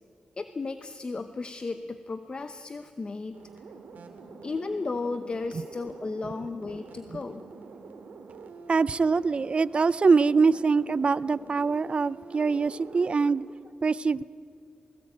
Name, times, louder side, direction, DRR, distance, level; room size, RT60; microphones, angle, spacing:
voice 1, 0.4-3.4 4.4-7.4, left 3 dB, 35° left, 0.8 m, -34 dB
sound 1, 3.3-13.3, right 4 dB, 85° right, 2.4 m, -46 dB
voice 2, 8.7-13.4 13.8-14.2, right 4 dB, 40° right, 0.5 m, -23 dB
20.0 x 18.5 x 8.9 m
cardioid pair, 90°, 3 cm